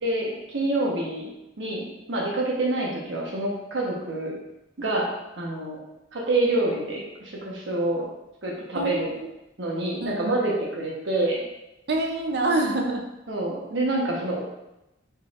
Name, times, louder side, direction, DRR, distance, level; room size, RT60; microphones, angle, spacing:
voice 1, 0.0-1.3 1.6-4.3 4.8-5.1 5.4-5.8 6.1-8.0 8.4-9.1 9.6-11.4 13.3-14.4, right 2 dB, 85° right, -3 dB, 1.1 m, -27 dB
voice 2, 8.7-9.3 10.0-10.4 11.9-13.0, right 2 dB, 60° right, 2 dB, 0.6 m, -26 dB
4.3 x 4.1 x 2.5 m, 0.91 s
head